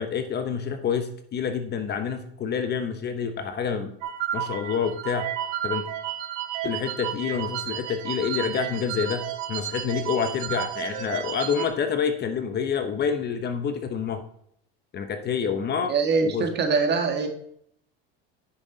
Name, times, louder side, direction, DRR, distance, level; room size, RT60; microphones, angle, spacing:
voice 1, 0.0-4.0 4.3-5.3 5.6-5.8 6.6-9.2 9.5-14.2 14.9-15.9 16.2-16.5, left 6 dB, 35° left, 8 dB, 1.0 m, -27 dB
sound 1, 4.0-11.7, right 10 dB, 65° right, 1.2 m, -32 dB
voice 2, 15.9-17.3, right 4 dB, 35° right, 4 dB, 1.8 m, -23 dB
9.5 x 6.4 x 4.0 m, 0.69 s
supercardioid pair, 115°, 30 cm